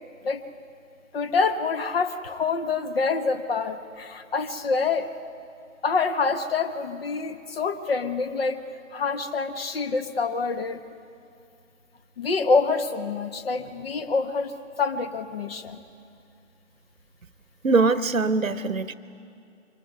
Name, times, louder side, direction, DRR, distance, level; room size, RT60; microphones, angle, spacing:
voice 1, 1.1-5.1 5.8-8.6 8.9-10.8 12.2-14.5 14.8-15.8, left 4 dB, 45° left, 10 dB, 1.5 m, -26 dB
voice 2, 17.6-18.9, right 3 dB, 80° right, 15 dB, 0.9 m, -22 dB
24.0 x 20.5 x 9.4 m, 2.5 s
figure-of-eight pair, 130°, 40 cm